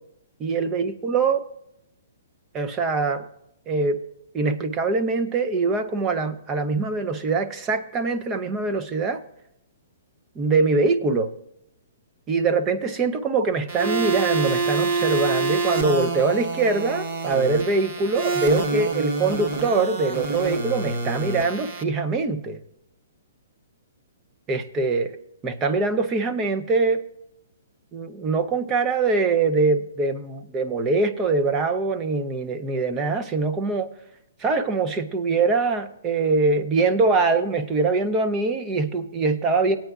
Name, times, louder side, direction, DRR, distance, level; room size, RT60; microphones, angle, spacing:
voice 1, 0.4-1.4 2.5-3.2 3.7-4.0 4.3-9.2 10.4-11.3 12.3-22.6 24.5-25.2 25.4-27.0 27.9-33.9 34.4-39.8, right 3 dB, 15° right, 9 dB, 0.6 m, -23 dB
sound 1, 13.7-21.8, right 4 dB, 40° right, 1.1 m, -27 dB
18.5 x 8.9 x 2.4 m, 0.80 s
hypercardioid pair, 170°, 0 cm